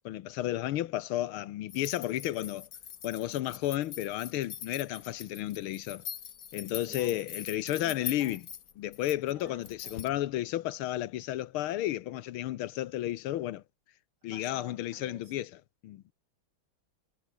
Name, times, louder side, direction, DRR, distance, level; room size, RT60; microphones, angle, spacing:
voice 1, 0.0-2.7 3.0-6.0 6.5-8.4 8.8-13.6 14.2-15.5 15.8-16.0, left 14 dB, 85° left, 1.7 m, -32 dB
sound 1, 1.7-10.2, left 8 dB, 50° left, 1.4 m, -43 dB
voice 2, 6.9-7.3 7.7-8.4 9.3-10.1 14.3-15.4, right 2 dB, 50° right, 7.9 m, -53 dB
omnidirectional pair, 2.3 m